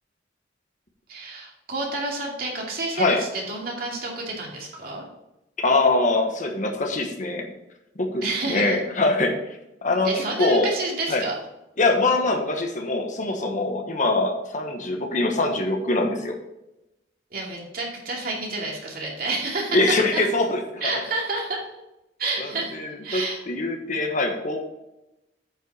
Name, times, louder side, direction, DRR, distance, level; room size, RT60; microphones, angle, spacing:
voice 1, 1.1-5.0 8.2-8.8 10.0-11.4 17.3-19.8 20.1-20.2 20.8-21.6 22.2-22.8 23.0-23.4, right 2 dB, 55° right, -1 dB, 2.5 m, -29 dB
voice 2, 5.6-7.5 8.0-9.4 9.8-10.7 11.1-11.2 11.8-16.3 19.7-20.9 22.4-24.7, left 2 dB, 45° left, 3 dB, 1.3 m, -23 dB
9.0 x 5.5 x 4.9 m, 0.93 s
head